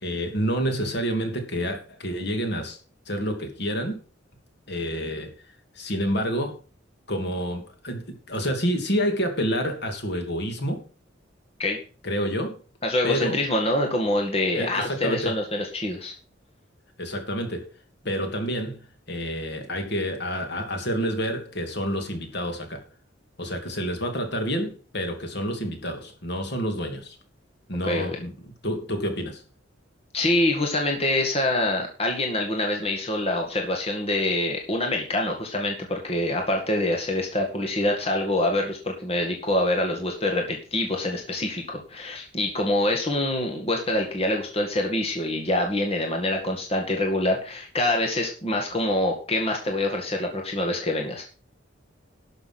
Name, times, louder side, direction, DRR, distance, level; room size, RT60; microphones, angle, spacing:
voice 1, 0.0-2.8 3.1-4.0 4.7-5.3 5.7-6.5 7.1-10.8 12.0-12.6 13.0-13.4 14.5-15.4 17.0-17.7 18.0-18.8 19.1-22.8 23.4-27.2 27.7-29.4, equal, 60° left, 2.8 m, -28 dB
voice 2, 12.8-16.1 27.8-28.1 30.1-51.2, left 1 dB, 30° left, 2.1 m, -25 dB
12.0 x 6.7 x 6.0 m
head